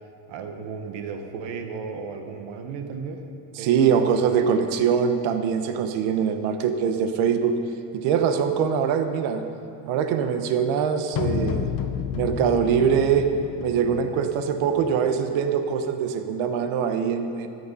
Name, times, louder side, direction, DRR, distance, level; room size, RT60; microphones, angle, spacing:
voice 1, 0.3-3.2 3.6-4.0, right 5 dB, 65° right, 5 dB, 1.4 m, -34 dB
voice 2, 3.6-7.6 7.9-9.4 9.8-11.7 12.1-13.3 13.6-17.5, right 7 dB, 90° right, 8 dB, 1.1 m, -23 dB
sound 1, 11.1-15.2, left 7 dB, 45° left, 0.9 m, -31 dB
13.0 x 11.0 x 5.5 m, 2.6 s
cardioid pair, 155°, 47 cm